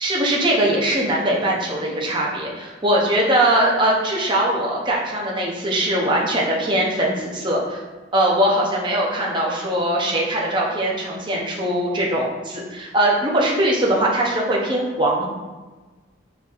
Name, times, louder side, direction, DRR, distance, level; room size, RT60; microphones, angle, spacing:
voice 1, 0.0-7.8 8.1-15.3, right 1 dB, 25° right, -3 dB, 0.6 m, -21 dB
4.1 x 4.0 x 2.4 m, 1.3 s
head